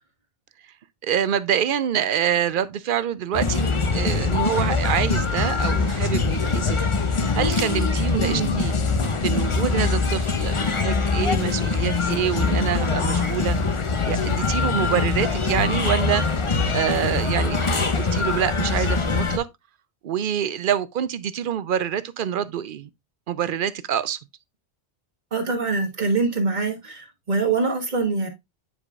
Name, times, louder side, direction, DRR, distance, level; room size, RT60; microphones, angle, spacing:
voice 1, 1.0-8.7 9.2-13.7 14.0-16.2 16.7-19.5 20.0-22.9 23.3-24.2, right 9 dB, 60° right, 0.6 m, -26 dB
sound 1, 3.3-19.4, left 4 dB, 35° left, 0.7 m, -23 dB
voice 2, 8.1-8.6 25.3-28.3, right 4 dB, 45° right, 1.4 m, -24 dB
9.1 x 4.9 x 2.4 m
omnidirectional pair, 1.1 m